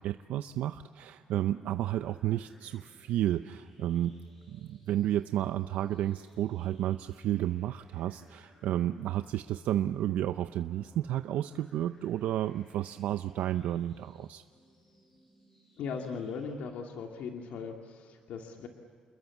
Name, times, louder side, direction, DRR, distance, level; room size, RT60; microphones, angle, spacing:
voice 1, 0.0-4.2 4.5-14.4, right 12 dB, 85° right, 10 dB, 0.6 m, -32 dB
sound 1, 0.5-16.5, equal, 15° left, 7.6 m, -63 dB
voice 2, 15.8-18.7, left 5 dB, 80° left, 2 dB, 2.4 m, -38 dB
28.5 x 21.5 x 7.3 m, 2.1 s
cardioid pair, 165°, 3 cm